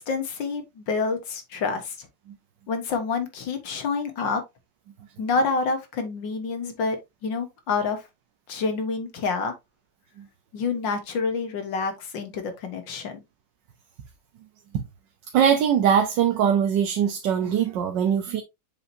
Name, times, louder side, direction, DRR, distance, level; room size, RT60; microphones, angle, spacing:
voice 1, 0.0-2.1 2.7-4.4 5.2-8.0 8.5-9.5 10.5-13.2, left 4 dB, 80° left, 2.1 m, -28 dB
voice 2, 15.3-18.4, right 8 dB, 75° right, 1.5 m, -21 dB
7.1 x 5.1 x 2.8 m
omnidirectional pair, 2.0 m